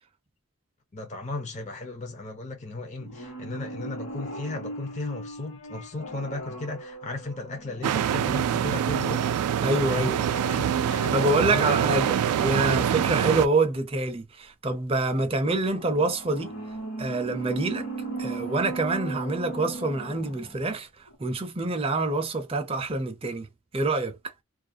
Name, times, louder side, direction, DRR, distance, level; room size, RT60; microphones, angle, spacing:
voice 1, 0.9-9.3 9.9-10.2 10.5-11.7, left 2 dB, 30° left, 0.6 m, -36 dB
sound 1, 3.0-8.7 9.8-12.8 15.6-20.8 21.1-21.2, right 2 dB, 55° left, 1.1 m, -38 dB
sound 2, 7.8-13.5, right 9 dB, 90° right, 0.3 m, -25 dB
voice 2, 9.6-10.2 11.1-16.5 17.0-17.9 18.2-20.9 21.2-23.5 23.7-24.2, right 2 dB, 25° right, 0.5 m, -26 dB
2.4 x 2.2 x 2.6 m
head